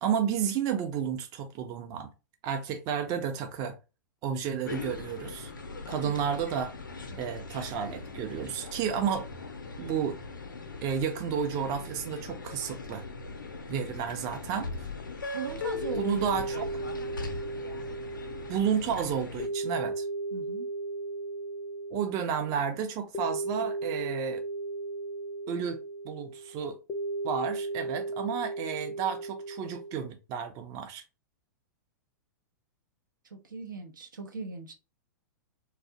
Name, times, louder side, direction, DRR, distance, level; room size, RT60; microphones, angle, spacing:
voice 1, 0.0-2.1 2.4-3.8 4.2-5.5 5.9-6.7 7.2-9.3 9.8-10.2 10.8-13.0 13.7-14.9 15.9-16.7 18.5-20.1 21.9-24.4 25.5-25.8 26.0-26.8 27.2-31.0, right 7 dB, 35° right, 0.5 m, -31 dB
sound 1, 4.6-19.5, left 3 dB, 90° left, 0.5 m, -40 dB
voice 2, 15.3-16.2 16.5-16.6 20.3-20.7 33.3-34.7, right 4 dB, 85° right, 0.6 m, -39 dB
sound 2, 15.8-30.0, right 2 dB, 25° left, 0.4 m, -36 dB
2.4 x 2.0 x 2.7 m
hypercardioid pair, 105°, 10 cm